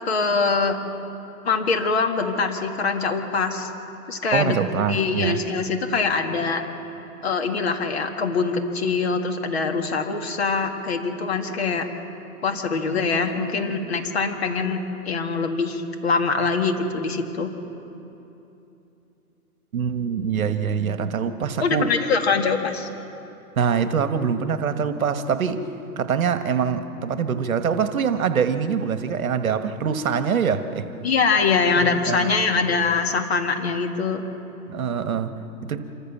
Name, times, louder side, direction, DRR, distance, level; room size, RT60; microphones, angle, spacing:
voice 1, 0.1-0.8 1.4-3.7 4.1-4.6 4.9-6.6 7.2-11.8 12.4-17.5 21.6-22.9 31.0-34.2, left 4 dB, 45° left, 1.9 m, -23 dB
voice 2, 4.3-5.4 19.7-21.9 23.6-25.6 26.0-30.9 31.7-32.7 34.7-35.3 35.6-35.9, right 6 dB, 65° right, 1.4 m, -24 dB
26.5 x 14.5 x 7.2 m
hypercardioid pair, 175°, 45 cm